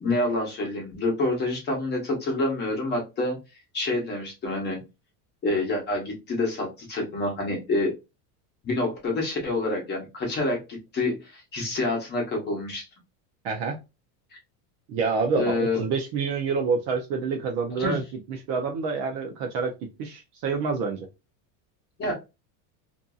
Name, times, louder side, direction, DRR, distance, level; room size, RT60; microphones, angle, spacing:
voice 1, 0.0-3.4 3.7-4.8 5.4-7.9 8.6-10.6 10.9-12.9 15.3-15.8 17.8-18.0 22.0-22.1, left 2 dB, 25° left, 0 dB, 0.9 m, -27 dB
voice 2, 13.4-13.8 14.9-18.0 18.3-19.7 20.0-21.1, right 5 dB, 40° right, 3 dB, 0.4 m, -27 dB
2.6 x 2.5 x 2.3 m, 0.26 s
cardioid pair, 160°, 43 cm